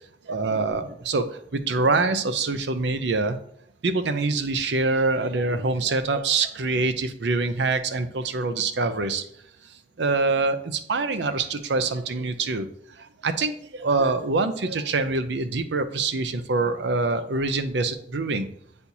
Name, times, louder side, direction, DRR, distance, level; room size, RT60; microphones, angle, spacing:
voice 1, 0.3-1.2 1.5-3.4 3.8-9.2 10.0-12.7 13.2-18.5, right 3 dB, 70° right, 10 dB, 0.6 m, -25 dB
8.2 x 4.3 x 2.8 m, 0.66 s
head